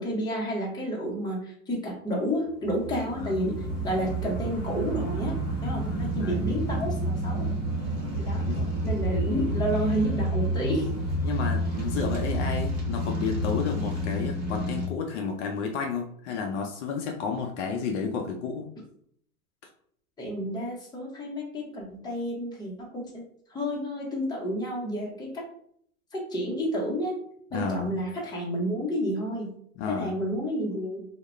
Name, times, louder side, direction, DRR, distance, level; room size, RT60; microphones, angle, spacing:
voice 1, 0.0-7.6 8.2-8.5 8.8-10.9 20.2-23.2 23.5-25.4 26.1-27.2 27.5-29.5 29.9-31.1, equal, 10° left, -2 dB, 0.7 m, -30 dB
sound 1, 2.6-14.9, right 1 dB, 40° right, 1.0 m, -29 dB
voice 2, 5.9-6.5 8.4-8.7 11.2-18.7 27.5-27.9 29.8-30.2, left 5 dB, 50° left, 2 dB, 0.5 m, -32 dB
2.3 x 2.1 x 3.1 m, 0.65 s
hypercardioid pair, 105°, 44 cm